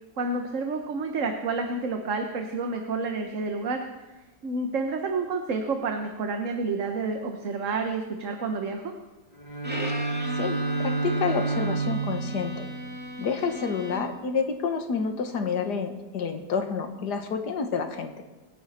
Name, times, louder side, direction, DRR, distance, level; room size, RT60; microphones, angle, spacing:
voice 1, 0.2-3.8 4.4-8.9, right 3 dB, 50° right, 5 dB, 1.4 m, -29 dB
Bowed string instrument, 9.3-13.5, right 3 dB, 35° left, 3.5 m, -30 dB
Bowed string instrument 2, 9.6-14.3, equal, 5° right, 2.4 m, -37 dB
voice 2, 10.4-12.7 13.2-18.1, left 5 dB, 65° left, 6 dB, 2.0 m, -29 dB
26.5 x 10.0 x 4.3 m, 1.2 s
omnidirectional pair, 1.9 m